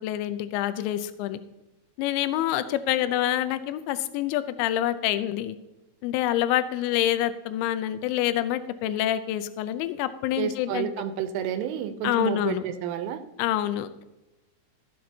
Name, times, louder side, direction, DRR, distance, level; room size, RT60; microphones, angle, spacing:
voice 1, 0.0-1.4 2.0-5.6 6.0-10.9 12.0-12.6 13.4-14.0, left 12 dB, 80° left, 12 dB, 2.7 m, -27 dB
voice 2, 10.4-13.2, right 9 dB, 90° right, 9 dB, 3.3 m, -30 dB
15.0 x 7.7 x 2.8 m, 1.0 s
omnidirectional pair, 5.5 m